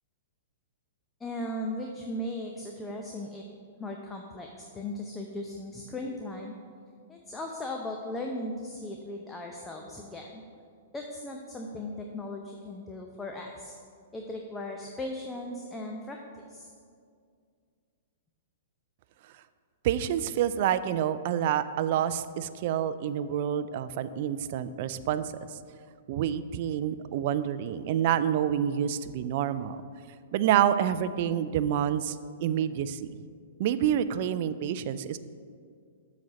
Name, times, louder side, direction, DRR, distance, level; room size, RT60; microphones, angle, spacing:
voice 1, 1.2-3.4 3.8-6.5 7.1-10.4 10.9-13.8 14.1-16.2 16.5-16.7, left 1 dB, 15° left, 1 dB, 0.6 m, -37 dB
voice 2, 19.8-25.3 26.1-29.8 30.3-32.2 32.4-33.2 33.6-35.2, right 10 dB, 50° right, 13 dB, 0.3 m, -28 dB
7.4 x 4.2 x 6.3 m, 2.2 s
hypercardioid pair, 115°, 0 cm